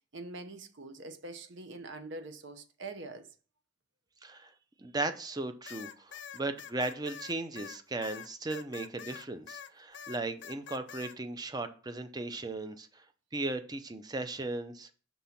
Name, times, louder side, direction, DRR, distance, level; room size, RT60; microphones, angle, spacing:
voice 1, 0.1-3.3, right 2 dB, 60° right, 0.8 m, -44 dB
voice 2, 4.8-12.9 13.3-14.9, right 2 dB, 20° right, 0.5 m, -36 dB
sound 1, 5.7-9.7 9.9-11.2, left 8 dB, 60° left, 0.5 m, -46 dB
5.5 x 3.6 x 5.7 m
head